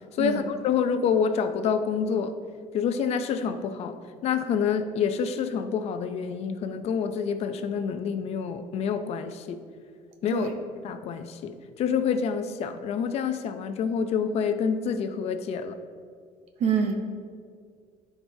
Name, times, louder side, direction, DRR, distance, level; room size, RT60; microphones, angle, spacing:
voice 1, 0.2-2.3 2.7-4.0 4.2-9.6 10.2-10.5 10.8-15.7, left 6 dB, 45° left, 8 dB, 0.5 m, -27 dB
voice 2, 16.6-17.0, right 6 dB, 50° right, 4 dB, 0.7 m, -25 dB
14.0 x 4.7 x 2.7 m, 2.1 s
cardioid pair, 165°, 14 cm